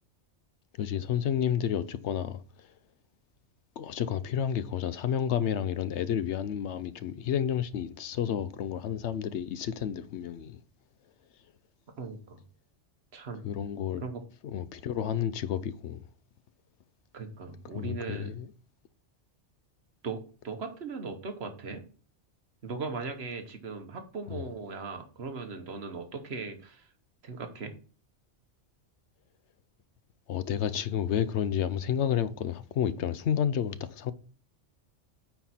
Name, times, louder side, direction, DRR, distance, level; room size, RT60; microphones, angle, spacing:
voice 1, 0.8-2.4 3.8-10.6 13.4-14.0 14.4-16.0 17.7-18.5 24.3-24.4 30.3-34.1, left 9 dB, 75° left, 0.9 m, -30 dB
voice 2, 12.0-12.4 13.1-13.4 14.0-14.2 17.1-18.3 20.0-21.8 22.6-26.9 27.2-27.7, right 4 dB, 60° right, 1.3 m, -38 dB
9.1 x 4.5 x 4.2 m
omnidirectional pair, 1.2 m